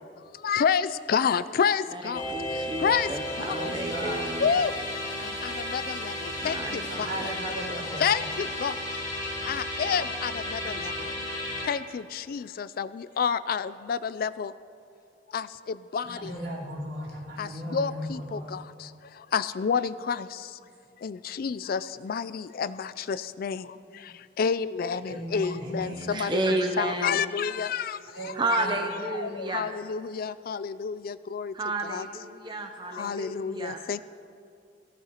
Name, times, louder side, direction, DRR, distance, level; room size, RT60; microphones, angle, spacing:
voice 1, 0.4-2.2 2.8-3.1 3.4-3.7 4.4-4.7 5.4-7.1 8.0-8.7 9.5-10.9 11.6-14.5 15.3-15.5 15.9-16.3 17.4-18.6 19.3-20.3 21.0-23.6 24.4-26.4 26.8-28.0 28.5-28.6 29.1-31.5 31.9-32.1 33.0-34.0, left 6 dB, 55° left, 15 dB, 0.3 m, -29 dB
voice 2, 1.9-4.6 6.3-7.3 26.0-27.2 28.3-29.7 31.5-33.8, right 2 dB, 25° right, 4 dB, 0.6 m, -32 dB
sound 1, 2.1-11.7, left 1 dB, 25° left, 2.6 m, -33 dB
voice 3, 3.6-4.4 6.9-8.1 16.0-18.6 21.4-21.6 21.9-22.0 22.4-23.2 23.5-24.1 24.9-26.5 28.1-28.8 30.4-30.5 31.2-31.5, equal, 80° right, -7 dB, 3.8 m, -38 dB
18.0 x 15.5 x 2.9 m, 2.5 s
head